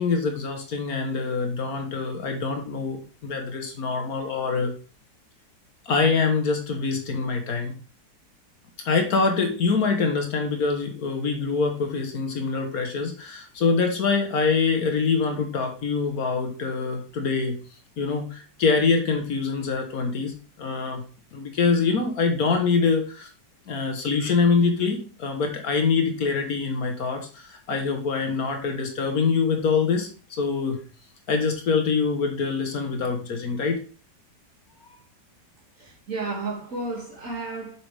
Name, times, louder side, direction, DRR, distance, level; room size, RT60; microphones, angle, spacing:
voice 1, 0.0-4.7 5.9-7.7 8.8-17.6 18.0-20.3 20.6-21.0 21.3-23.3 23.7-30.8 31.3-33.8, left 4 dB, 60° left, 1.4 m, -24 dB
voice 2, 35.8-37.7, right 3 dB, 50° right, 2.4 m, -32 dB
7.1 x 5.8 x 3.3 m
omnidirectional pair, 1.8 m